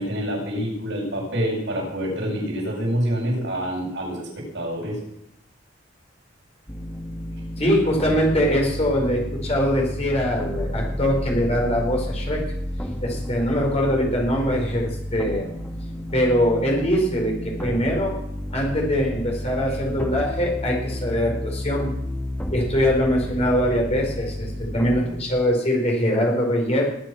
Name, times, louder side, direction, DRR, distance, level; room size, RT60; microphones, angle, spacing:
voice 1, 0.0-5.0 7.6-7.8, equal, 70° right, -3 dB, 7.9 m, -27 dB
sound 1, 6.7-25.2, left 1 dB, 10° left, 1.8 m, -31 dB
voice 2, 7.6-12.4 13.0-15.5 16.1-18.1 18.5-21.9 22.5-26.8, equal, 35° left, 0 dB, 4.9 m, -22 dB
20.0 x 8.9 x 6.3 m, 0.75 s
head